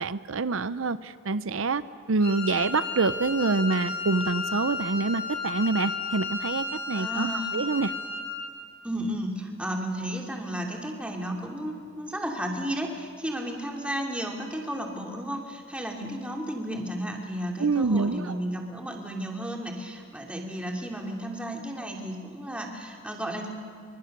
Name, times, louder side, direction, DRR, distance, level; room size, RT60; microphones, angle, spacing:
voice 1, 0.0-1.8 2.1-7.9 17.6-18.4, right 3 dB, 85° right, 14 dB, 0.7 m, -26 dB
Wind instrument woodwind instrument, 2.2-8.5, left 4 dB, 30° left, 5.3 m, -33 dB
voice 2, 6.9-7.5 8.8-23.5, equal, 5° right, 1 dB, 2.7 m, -33 dB
28.0 x 25.0 x 6.7 m, 2.3 s
head